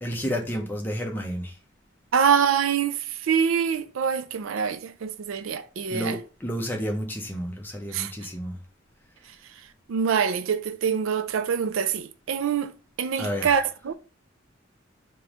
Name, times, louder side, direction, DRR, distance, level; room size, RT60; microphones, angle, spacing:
voice 1, 0.0-1.5 5.9-8.5 13.2-13.6, equal, 10° left, 0.7 m, -31 dB
voice 2, 2.1-6.2 7.9-8.1 9.9-13.9, right 7 dB, 90° right, 0.4 m, -25 dB
3.5 x 3.0 x 4.8 m
head